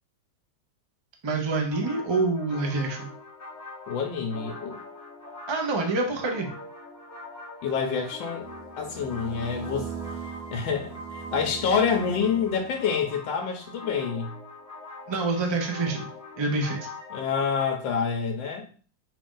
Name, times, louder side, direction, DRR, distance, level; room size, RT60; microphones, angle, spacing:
voice 1, 1.2-3.1 5.5-6.5 15.1-16.1 16.4-16.9, right 3 dB, 35° right, 1 dB, 0.4 m, -26 dB
sound 1, 1.7-17.7, left 2 dB, 15° left, 0.7 m, -43 dB
voice 2, 3.9-4.8 7.6-8.4 8.8-9.9 10.5-11.0 11.3-14.3 17.1-18.7, left 6 dB, 85° left, 2 dB, 1.4 m, -27 dB
sound 2, 8.4-13.0, right 6 dB, 75° right, 1.5 m, -40 dB
5.6 x 2.5 x 3.7 m, 0.41 s
omnidirectional pair, 2.0 m